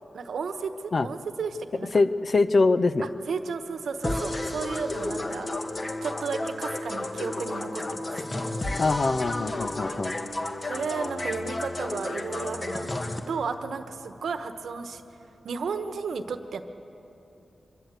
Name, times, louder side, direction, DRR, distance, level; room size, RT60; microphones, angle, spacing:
voice 1, 0.1-1.9 3.3-5.5 6.0-8.1 9.6-10.2 10.6-12.9 13.3-15.0 15.4-16.6, right 5 dB, 80° right, 9 dB, 1.1 m, -33 dB
voice 2, 1.9-3.1 8.8-10.2, left 3 dB, 55° left, 12 dB, 0.9 m, -23 dB
sound 1, 4.0-13.2, left 1 dB, 40° left, 1.9 m, -32 dB
24.5 x 13.5 x 8.2 m, 3.0 s
cardioid pair, 45°, 0 cm